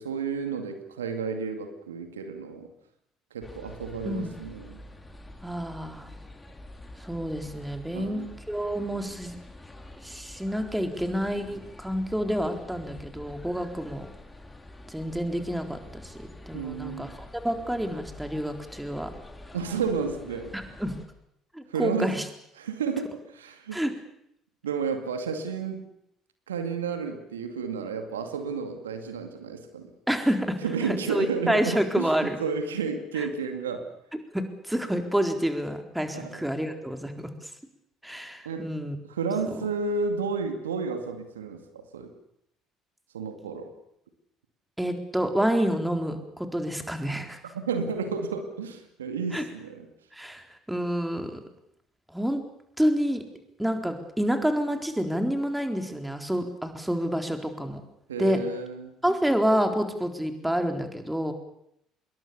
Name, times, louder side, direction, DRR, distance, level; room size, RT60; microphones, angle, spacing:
voice 1, 0.0-2.7 3.3-4.8 7.9-8.3 16.5-17.2 19.5-20.5 21.7-22.2 22.6-23.8 24.6-25.8 26.5-29.9 30.6-33.9 36.1-36.5 38.4-38.7 39.1-42.1 43.1-43.7 47.5-49.9 58.1-58.9, right 5 dB, 80° right, 6 dB, 2.3 m, -31 dB
sound 1, 3.4-21.1, left 1 dB, 15° left, 4.2 m, -46 dB
voice 2, 5.4-6.1 7.0-9.4 10.0-14.1 14.9-17.1 17.4-19.1 20.5-21.0 21.5-22.3 23.7-23.9 30.1-30.6 30.8-32.4 33.2-33.3 34.3-37.5 38.0-39.0 44.8-47.4 49.3-49.4 50.1-51.4 52.1-52.4 52.8-53.2 53.6-57.8 58.2-58.4 59.0-61.3, equal, 5° right, 5 dB, 4.1 m, -28 dB
26.0 x 21.5 x 7.1 m, 0.77 s
figure-of-eight pair, 55°, 0 cm